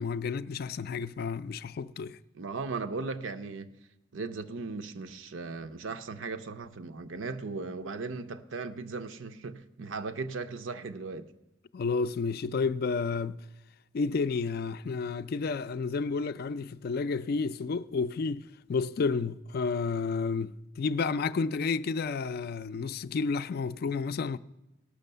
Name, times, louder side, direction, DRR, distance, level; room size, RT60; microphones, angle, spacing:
voice 1, 0.0-2.2 11.7-13.4 13.9-18.4 18.7-24.4, left 4 dB, 50° left, 0.4 m, -31 dB
voice 2, 2.3-3.7 4.1-11.3, right 4 dB, 85° right, 0.7 m, -37 dB
17.0 x 6.2 x 6.7 m
head